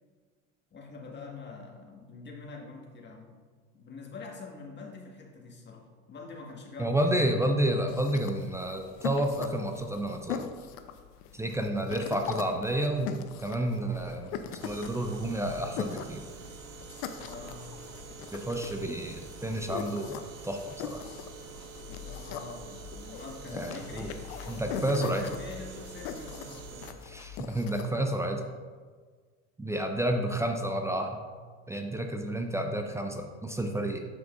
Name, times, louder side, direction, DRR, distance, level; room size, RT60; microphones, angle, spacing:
voice 1, 0.7-3.4 3.7-7.1 17.1-17.8 21.9-24.3 24.6-26.9, left 4 dB, 25° left, -1 dB, 1.5 m, -45 dB
voice 2, 6.8-10.5 11.3-16.2 18.3-21.0 23.5-24.1 24.5-25.2 27.0-28.5 29.6-31.2 31.7-34.1, right 1 dB, 10° right, 4 dB, 0.4 m, -30 dB
sound 1, 7.9-27.9, left 8 dB, 55° left, 0.6 m, -41 dB
sound 2, 14.6-26.9, right 5 dB, 80° right, 0.8 m, -46 dB
7.4 x 5.7 x 2.4 m, 1.5 s
hypercardioid pair, 80°, 39 cm